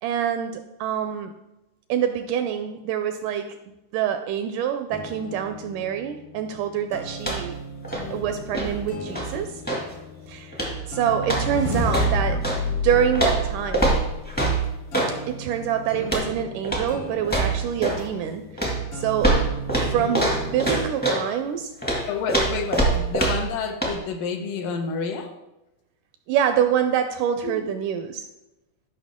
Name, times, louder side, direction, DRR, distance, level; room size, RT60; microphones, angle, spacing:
voice 1, 0.0-1.4 1.9-3.6 3.9-7.5 8.1-9.6 10.3-10.6 10.9-12.4 12.8-14.0 15.3-19.3 19.9-21.7 26.3-28.3, right 9 dB, 80° right, 7 dB, 1.9 m, -26 dB
sound 1, 4.9-20.9, right 1 dB, 60° left, 1.6 m, -38 dB
sound 2, 7.2-7.6 7.8-9.9 10.5-10.9 11.2-12.6 13.1-15.2 16.0-16.3 16.6-16.9 17.2-18.1 18.6-21.3 21.8-23.5 23.8-24.0, right 2 dB, 5° left, 0.7 m, -24 dB
sound 3, 11.1-14.4, left 2 dB, 40° left, 1.1 m, -28 dB
voice 2, 22.1-25.3 27.4-27.6, left 5 dB, 75° left, 5 dB, 2.3 m, -29 dB
12.5 x 5.6 x 3.6 m, 0.96 s
omnidirectional pair, 4.0 m